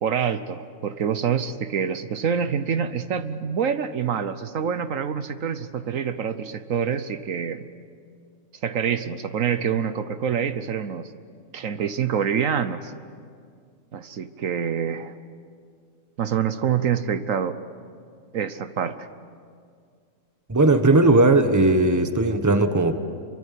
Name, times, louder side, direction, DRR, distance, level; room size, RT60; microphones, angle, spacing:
voice 1, 0.0-7.6 8.6-11.1 11.5-12.9 13.9-15.1 16.2-17.6 18.3-19.1, right 7 dB, 70° right, 11 dB, 1.3 m, -26 dB
voice 2, 20.5-23.0, right 2 dB, 15° right, 8 dB, 1.2 m, -18 dB
27.0 x 24.0 x 8.5 m, 2.2 s
omnidirectional pair, 1.5 m